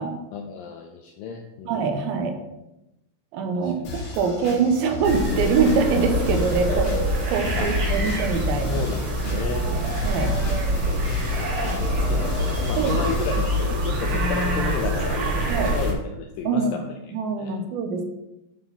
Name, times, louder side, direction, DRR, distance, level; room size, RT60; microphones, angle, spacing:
voice 1, 0.3-1.9 3.5-3.7 6.7-6.8 7.6-7.8 8.7-9.7 10.8-11.2 11.8-16.9 17.4-17.6, left 6 dB, 90° left, 3 dB, 2.0 m, -32 dB
voice 2, 1.7-2.4 3.3-6.9 7.3-8.9 9.7-10.3 12.8-13.1 15.5-15.7 16.4-16.8 17.1-18.1, right 5 dB, 75° right, 5 dB, 2.5 m, -24 dB
sound 1, 3.8-13.4, left 3 dB, 65° left, 3.0 m, -34 dB
sound 2, 5.0-15.9, right 1 dB, 55° right, 3.2 m, -25 dB
11.0 x 3.9 x 4.0 m, 0.92 s
omnidirectional pair, 4.6 m